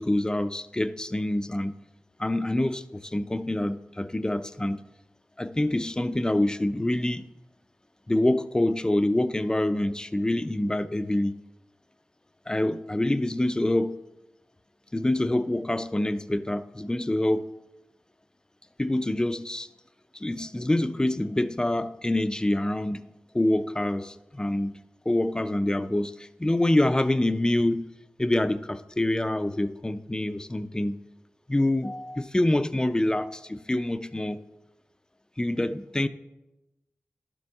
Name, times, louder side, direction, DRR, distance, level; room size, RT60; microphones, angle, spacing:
voice 1, 0.0-1.8 2.2-4.8 5.4-7.2 8.1-11.4 12.5-14.0 14.9-17.5 18.8-19.7 20.1-23.0 23.3-24.8 25.1-27.9 28.2-31.0 31.5-34.4 35.4-36.1, left 1 dB, 15° left, 12 dB, 0.4 m, -26 dB
11.5 x 6.8 x 3.5 m, 1.0 s
wide cardioid pair, 70°, 5 cm